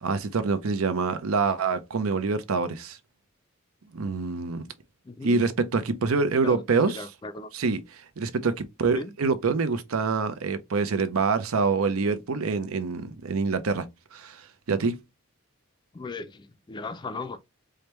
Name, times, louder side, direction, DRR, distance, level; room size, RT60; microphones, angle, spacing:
voice 1, 0.0-3.0 3.9-4.7 5.2-7.0 7.5-7.8 8.2-13.9 14.1-15.0, right 4 dB, 85° right, 0.6 m, -26 dB
voice 2, 5.0-5.4 6.4-7.5 8.9-9.1 15.9-17.4, left 3 dB, 20° left, 0.3 m, -37 dB
4.9 x 2.1 x 3.0 m
head